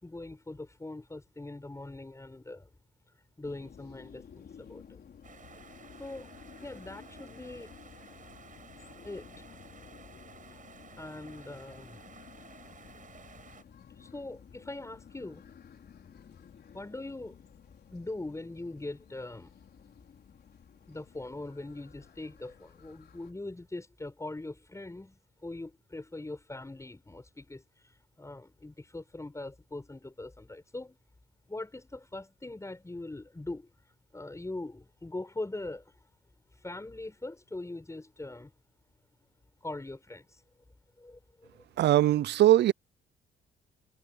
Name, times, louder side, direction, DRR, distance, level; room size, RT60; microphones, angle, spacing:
voice 1, 0.0-2.7 3.4-5.0 6.0-6.3 6.6-7.7 9.0-9.5 11.0-12.1 14.0-15.4 16.7-17.4 17.9-19.5 20.9-27.9 28.2-31.0 31.5-33.7 34.1-35.9 36.6-38.5 39.6-40.4 41.0-41.5, left 2 dB, 15° left, 6.5 m, -42 dB
sound 1, 3.4-23.3, left 7 dB, 55° left, 4.6 m, -54 dB
sound 2, 5.2-13.6, right 6 dB, 40° right, 6.8 m, -54 dB
voice 2, 41.8-42.7, right 14 dB, 60° right, 0.5 m, -21 dB
cardioid pair, 90°, 20 cm